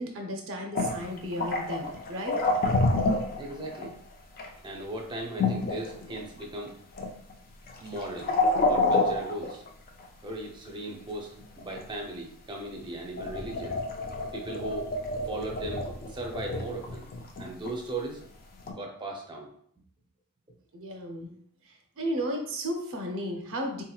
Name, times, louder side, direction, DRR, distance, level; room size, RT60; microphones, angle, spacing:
voice 1, 0.0-2.4 20.7-21.3 21.7-23.8, equal, 65° right, 3 dB, 0.6 m, -34 dB
sound 1, 0.7-3.9 4.4-4.5 5.4-6.7 6.9-7.3 7.7-10.1 11.4-11.9 12.8-12.9 13.1-17.7 18.6-18.7, left 2 dB, 40° left, 0.5 m, -28 dB
voice 2, 3.4-3.9 4.6-6.7 7.8-8.3 8.7-9.6 10.2-13.8 14.3-14.9 15.3-17.1 17.4-18.2 18.7-19.5, right 2 dB, 20° right, 0 dB, 0.6 m, -37 dB
3.7 x 2.8 x 2.3 m, 0.63 s
head